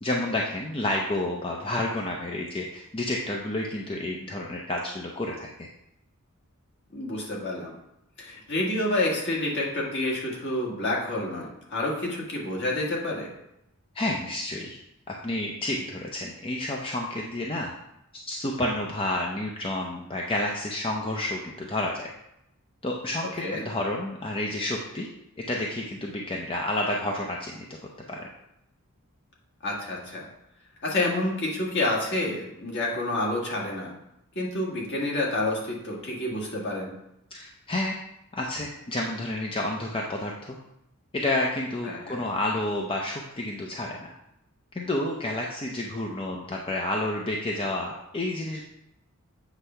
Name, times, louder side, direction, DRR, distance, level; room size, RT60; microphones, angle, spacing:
voice 1, 0.0-5.7 13.9-14.8 15.1-17.7 18.3-22.1 22.8-25.1 25.5-27.7 28.1-28.3 37.3-38.0 38.3-40.6 41.1-44.1 44.7-48.6, left 1 dB, 25° left, -1 dB, 0.6 m, -30 dB
voice 2, 6.9-7.7 8.2-13.3 23.4-23.6 29.6-30.2 30.8-33.9 34.3-36.9 41.8-42.2, left 2 dB, 50° left, -2 dB, 1.6 m, -28 dB
8.0 x 3.4 x 5.5 m, 0.82 s
head